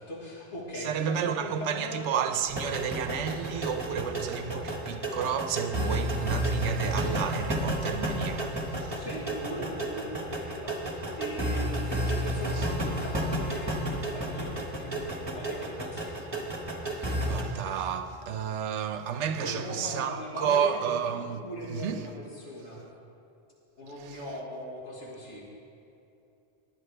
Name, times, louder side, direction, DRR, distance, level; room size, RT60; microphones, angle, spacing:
voice 1, 0.0-2.0 8.9-16.2 19.4-20.8 21.2-22.8 23.8-25.4, equal, 75° left, 2.0 m, -39 dB
voice 2, 0.8-9.1 16.9-21.4 21.7-22.1 24.0-24.2, right 8 dB, 90° right, 1.0 m, -31 dB
sound 1, 2.5-17.4, right 1 dB, 20° right, 1.4 m, -31 dB
19.0 x 9.5 x 3.3 m
omnidirectional pair, 1.2 m